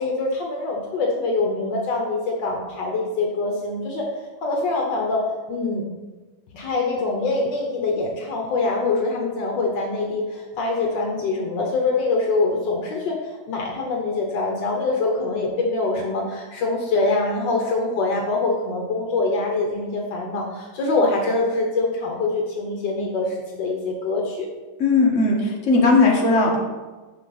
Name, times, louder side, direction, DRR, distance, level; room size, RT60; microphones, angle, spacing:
voice 1, 0.0-5.9 6.5-24.5, left 3 dB, 70° left, 0 dB, 1.7 m, -24 dB
voice 2, 24.8-26.6, left 3 dB, 40° left, -2 dB, 1.7 m, -17 dB
8.8 x 6.1 x 4.1 m, 1.2 s
omnidirectional pair, 2.1 m